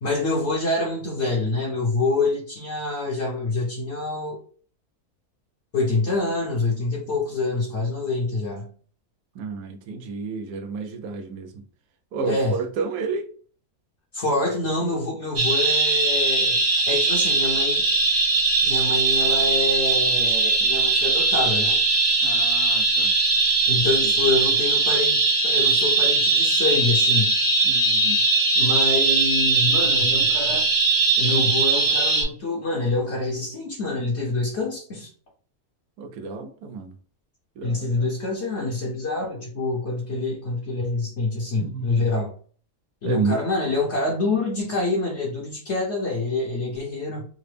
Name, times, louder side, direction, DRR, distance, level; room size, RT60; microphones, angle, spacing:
voice 1, 0.0-4.4 5.7-8.7 12.2-12.6 14.1-17.8 18.6-21.8 23.7-25.2 25.4-27.3 28.6-30.7 31.2-35.1 37.6-42.3 43.0-47.3, left 3 dB, 55° left, 0.9 m, -26 dB
voice 2, 9.3-11.6 12.1-13.3 22.2-23.1 24.0-24.1 27.6-28.2 36.0-36.9 37.6-38.1 41.6-42.3 43.0-43.4, right 4 dB, 85° right, 1.1 m, -31 dB
sound 1, 15.4-32.2, right 3 dB, 65° right, 1.4 m, -20 dB
3.8 x 2.0 x 3.2 m
omnidirectional pair, 1.6 m